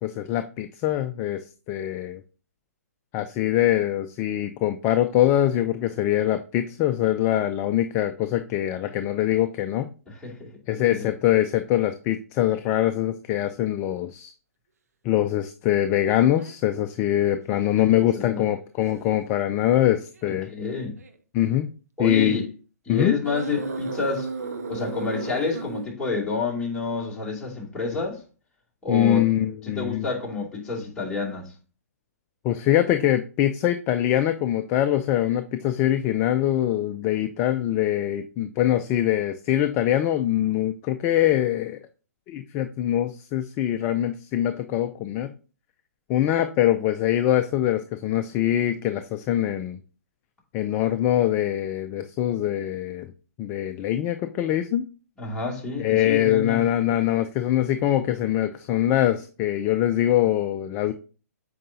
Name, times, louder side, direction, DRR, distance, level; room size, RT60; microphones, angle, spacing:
voice 1, 0.0-2.2 3.1-9.9 10.7-14.3 15.0-20.5 21.3-21.7 22.0-22.4 22.9-23.2 28.9-30.1 32.4-41.8 42.3-45.3 46.1-49.8 50.5-53.1 53.4-54.8 55.8-60.9, left 12 dB, 25° left, 0.5 m, -23 dB
voice 2, 10.1-10.5 10.9-11.1 18.1-18.4 20.5-21.0 22.0-22.5 22.9-24.3 24.7-28.2 28.8-29.3 29.7-31.5 55.2-56.6, left 4 dB, 10° left, 2.5 m, -29 dB
sound 1, 16.4-16.6 17.3-17.4 18.8-19.0 20.1-20.3 21.0-21.1 23.2-25.9, right 4 dB, 75° right, 0.9 m, -34 dB
7.6 x 5.0 x 2.7 m
hypercardioid pair, 130°, 9 cm